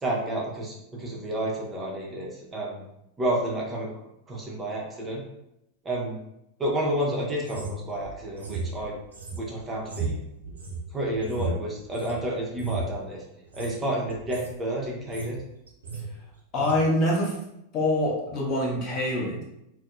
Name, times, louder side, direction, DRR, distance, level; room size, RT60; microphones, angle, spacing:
voice 1, 0.0-2.9 3.2-3.9 4.3-5.2 5.8-6.2 6.6-9.0 9.3-10.2 10.9-13.2 13.5-15.4, right 1 dB, 15° right, -3 dB, 0.5 m, -30 dB
sound 1, 7.4-12.2 12.5-12.9 13.4-13.8 14.1-14.5 14.9-15.4 15.7-16.1 16.6-16.8, right 3 dB, 75° right, 0.5 m, -34 dB
voice 2, 16.5-17.3 17.7-19.4, left 1 dB, 35° left, -3 dB, 0.7 m, -25 dB
2.5 x 2.0 x 2.4 m, 0.84 s
figure-of-eight pair, 90°, 0 cm